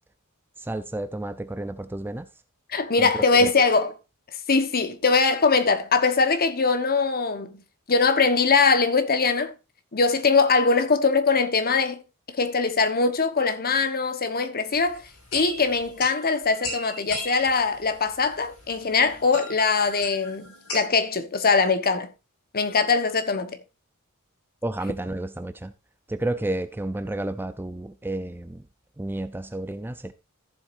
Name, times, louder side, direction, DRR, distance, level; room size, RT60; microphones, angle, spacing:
voice 1, 0.6-2.3 3.0-3.5 24.6-25.7 26.1-28.6 29.0-30.1, right 1 dB, 10° right, 0.4 m, -31 dB
voice 2, 2.7-3.9 4.5-7.6 7.9-9.5 9.9-12.0 12.3-15.0 15.3-22.1 22.5-23.6, left 4 dB, 45° left, 1.2 m, -22 dB
sound 1, 14.7-20.9, left 1 dB, 70° left, 6.1 m, -38 dB
14.5 x 7.5 x 2.6 m
head